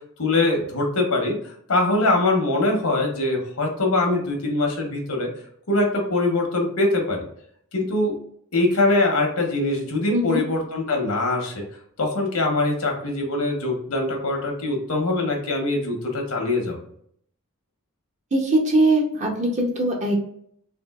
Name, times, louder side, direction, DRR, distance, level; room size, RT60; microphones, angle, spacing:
voice 1, 0.2-5.3 5.7-7.3 7.7-8.2 8.5-11.6 12.0-16.8, left 2 dB, 80° left, 1 dB, 1.0 m, -23 dB
voice 2, 10.1-10.4 18.3-20.1, right 1 dB, 35° right, 1 dB, 0.7 m, -21 dB
3.7 x 2.5 x 2.4 m, 0.66 s
head